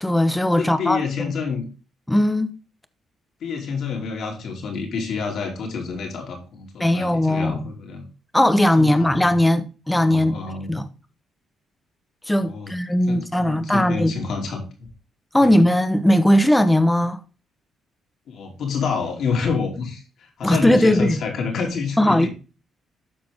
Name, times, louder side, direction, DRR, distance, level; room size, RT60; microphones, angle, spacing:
voice 1, 0.0-1.3 2.1-2.6 6.8-7.6 8.3-10.4 10.7-10.9 12.3-14.2 15.3-17.2 20.4-21.2 22.0-22.3, left 1 dB, 10° left, 0.9 m, -18 dB
voice 2, 0.6-1.7 3.4-8.0 8.8-9.3 10.0-10.8 12.4-12.7 13.1-14.9 15.4-15.6 18.3-22.3, left 5 dB, 65° left, 2.8 m, -28 dB
12.5 x 4.2 x 3.5 m
cardioid pair, 90°, 0 cm